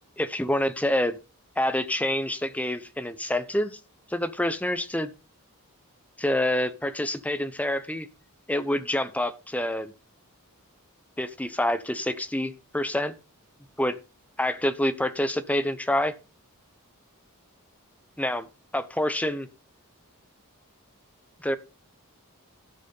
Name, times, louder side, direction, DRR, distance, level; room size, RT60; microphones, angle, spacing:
voice 1, 0.2-1.2 1.6-3.8 4.1-5.1 6.2-8.1 8.5-9.9 11.2-13.1 13.8-14.0 14.4-16.1 18.2-18.5 18.7-19.5 21.4-21.6, left 1 dB, 5° left, 12 dB, 0.9 m, -27 dB
13.0 x 6.2 x 5.5 m, 0.31 s
head